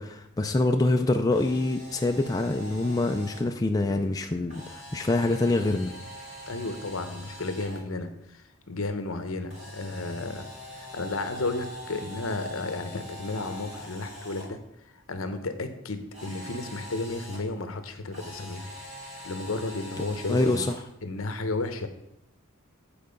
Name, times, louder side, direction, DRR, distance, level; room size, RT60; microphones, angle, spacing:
voice 1, 0.0-5.9 20.3-20.7, left 2 dB, 15° left, 4 dB, 0.3 m, -25 dB
Camera, 1.2-3.4 4.5-7.8 9.5-14.4 16.1-17.4 18.1-20.8, equal, 30° right, 2.9 m, -43 dB
voice 2, 6.5-14.6 15.1-18.7 19.2-20.7 21.0-21.9, left 2 dB, 70° left, 9 dB, 0.9 m, -33 dB
8.8 x 4.7 x 5.2 m, 0.82 s
head